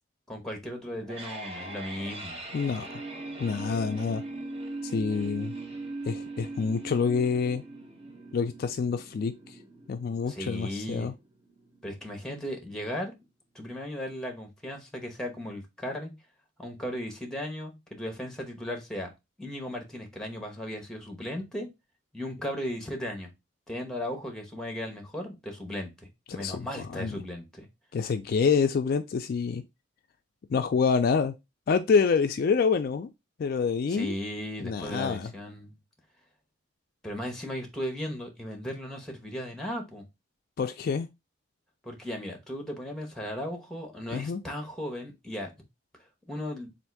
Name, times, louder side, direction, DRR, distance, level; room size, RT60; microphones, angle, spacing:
voice 1, 0.3-2.4 10.3-11.1 11.8-13.1 13.5-16.1 16.6-19.1 19.4-21.7 22.1-23.3 23.7-27.7 33.9-35.8 37.0-40.1 41.8-45.5 46.3-46.7, equal, 5° left, 0.9 m, -36 dB
sound 1, 0.8-11.8, right 2 dB, 30° right, 0.9 m, -40 dB
voice 2, 2.5-3.0 3.4-4.2 4.8-5.5 6.1-7.6 8.3-9.6 9.9-11.1 26.3-27.2 27.9-29.6 30.5-31.3 31.7-33.1 33.4-34.1 34.6-35.3 40.6-41.1 44.1-44.4, left 5 dB, 50° left, 0.3 m, -27 dB
3.5 x 2.5 x 4.5 m
head